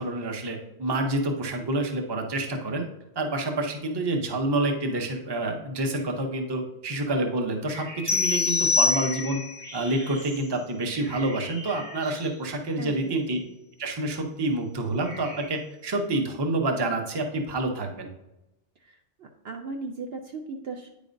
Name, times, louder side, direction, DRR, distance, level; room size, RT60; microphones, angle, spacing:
voice 1, 0.0-2.9 3.2-9.4 9.7-13.4 13.8-18.1, right 2 dB, 25° right, 4 dB, 0.6 m, -28 dB
sound 1, 7.7-12.7 15.0-15.5, equal, 80° right, 3.0 m, -42 dB
sound 2, 8.1-9.6, left 4 dB, 20° left, 0.5 m, -24 dB
voice 2, 12.8-13.5 18.8-20.9, right 4 dB, 60° right, 3 dB, 0.7 m, -38 dB
9.3 x 5.0 x 2.6 m, 0.94 s
omnidirectional pair, 1.3 m